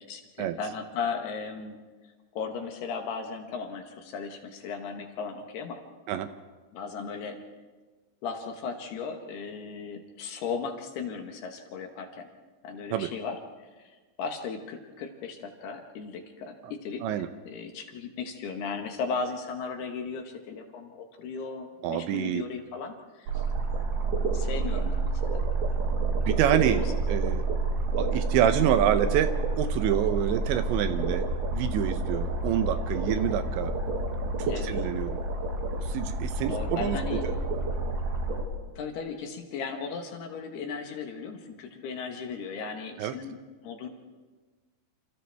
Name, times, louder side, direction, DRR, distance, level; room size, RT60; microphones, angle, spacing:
voice 1, 0.0-1.8 2.3-5.8 6.7-7.4 8.2-12.3 12.6-13.4 13.8-23.4 24.3-25.5 26.7-26.8 34.5-34.7 36.5-37.2 38.8-43.4 43.6-43.9, left 5 dB, 65° left, 4 dB, 3.0 m, -36 dB
voice 2, 21.8-22.4 26.1-27.4 28.0-33.7 34.4-35.2 35.8-37.4 43.0-43.2, right 10 dB, 80° right, 10 dB, 2.9 m, -27 dB
sound 1, 23.3-38.4, right 3 dB, 60° right, 3.8 m, -29 dB
28.5 x 27.5 x 3.5 m, 1.3 s
omnidirectional pair, 5.5 m